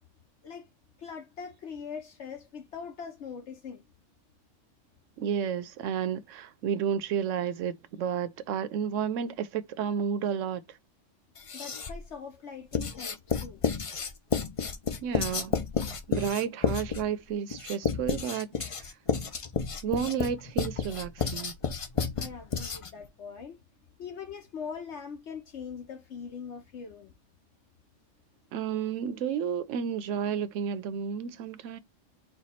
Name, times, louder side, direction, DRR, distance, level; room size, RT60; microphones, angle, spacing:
voice 1, 1.0-3.8 11.5-13.6 22.2-23.6 24.0-27.1, left 6 dB, 65° left, 1.1 m, -42 dB
voice 2, 5.2-10.6 15.0-15.6 16.1-18.7 19.8-21.5 28.5-31.8, right 8 dB, 80° right, 1.0 m, -31 dB
Writing, 11.4-12.1 12.7-23.1, left 6 dB, 50° left, 0.4 m, -31 dB
4.5 x 2.3 x 4.1 m
omnidirectional pair, 1.3 m